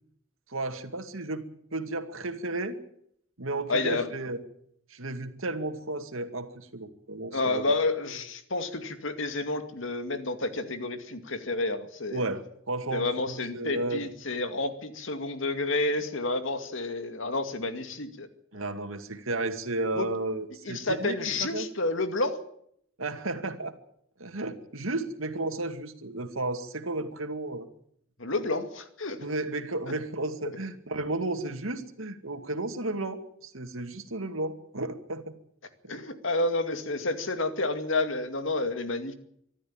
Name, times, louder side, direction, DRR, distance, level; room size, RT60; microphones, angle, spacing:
voice 1, 0.5-1.4 1.7-2.8 3.4-4.4 4.9-7.6 12.1-14.1 18.5-21.2 21.4-21.7 23.0-23.7 24.2-27.7 29.2-35.3, right 2 dB, 85° right, 8 dB, 2.3 m, -33 dB
voice 2, 3.7-4.1 7.3-12.2 12.9-18.3 18.5-18.6 20.0-20.1 20.6-22.4 28.2-29.3 29.8-29.9 35.9-39.1, left 2 dB, 70° left, 8 dB, 2.4 m, -30 dB
25.0 x 12.5 x 8.8 m, 0.69 s
head